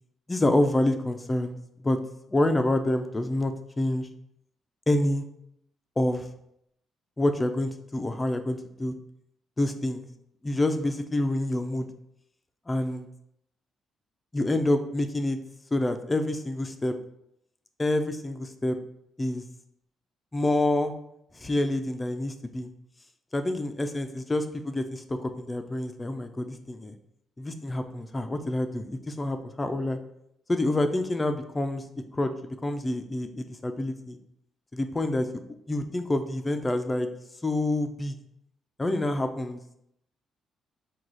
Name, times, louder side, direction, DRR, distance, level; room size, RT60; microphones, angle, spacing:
voice 1, 0.3-1.5 1.8-2.0 2.3-4.1 4.9-5.2 6.0-6.3 7.2-8.9 9.6-10.1 10.4-11.9 12.7-13.1 14.3-15.4 15.7-16.9 17.8-18.8 19.2-19.4 20.3-20.9 21.3-22.7 23.3-27.0 27.4-30.0 30.5-31.8 32.1-34.2 34.7-35.3 35.7-37.1 37.4-38.2 38.8-39.6, left 1 dB, 20° left, 7 dB, 0.4 m, -27 dB
4.7 x 2.3 x 3.9 m, 0.76 s
cardioid pair, 90°, 0 cm